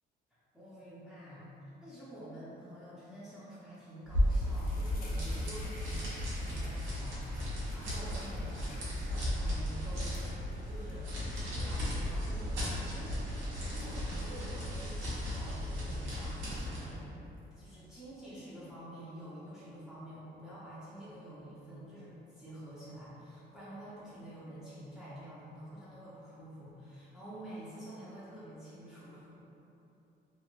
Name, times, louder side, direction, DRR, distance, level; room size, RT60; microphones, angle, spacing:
voice 1, 0.3-1.5 1.8-10.2 10.6-17.1 17.6-29.3, right 1 dB, ahead, -11 dB, 0.7 m, -48 dB
sound 1, 3.6-3.8 4.1-15.6 16.0-17.9, left 1 dB, 45° left, 0.6 m, -57 dB
sound 2, 4.0-16.9, left 1 dB, 85° right, 0.9 m, -35 dB
3.1 x 2.5 x 2.5 m, 2.9 s
cardioid pair, 90°, 20 cm